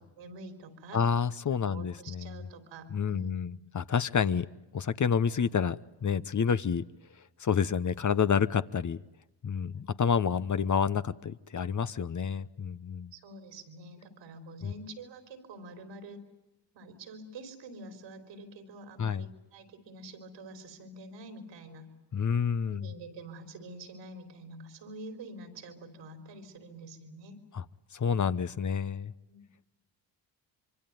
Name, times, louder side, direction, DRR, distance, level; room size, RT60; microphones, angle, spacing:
voice 1, 0.0-1.0 1.5-3.6 9.7-10.0 13.1-16.2 16.7-21.9 22.7-27.4 29.3-29.5, right 2 dB, 85° right, 8 dB, 3.9 m, -47 dB
voice 2, 0.9-2.4 2.9-4.5 4.7-6.8 7.4-9.0 9.4-13.1 14.6-14.7 19.0-19.2 22.1-22.9 27.5-27.6 27.9-29.1, left 6 dB, 40° left, 14 dB, 1.0 m, -29 dB
25.5 x 24.0 x 9.3 m, 0.95 s
supercardioid pair, 50°, 44 cm